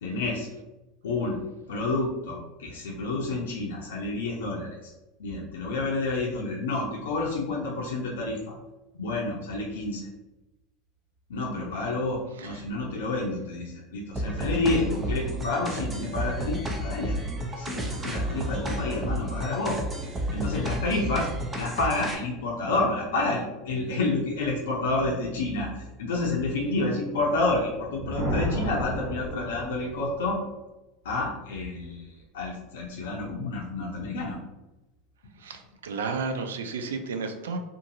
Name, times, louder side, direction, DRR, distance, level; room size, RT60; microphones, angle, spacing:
voice 1, 0.0-0.5 1.0-1.4 1.7-4.9 5.2-8.5 8.9-10.1 11.3-17.2 17.5-30.4 31.0-34.4, left 2 dB, 80° left, -2 dB, 0.5 m, -29 dB
sound 1, 14.2-22.2, equal, 20° right, 0.6 m, -31 dB
Thunder, 27.6-30.2, equal, 70° right, 0.8 m, -32 dB
voice 2, 35.4-37.6, right 4 dB, 85° right, 6 dB, 0.3 m, -32 dB
2.5 x 2.5 x 2.7 m, 1.0 s
hypercardioid pair, 95°, 0 cm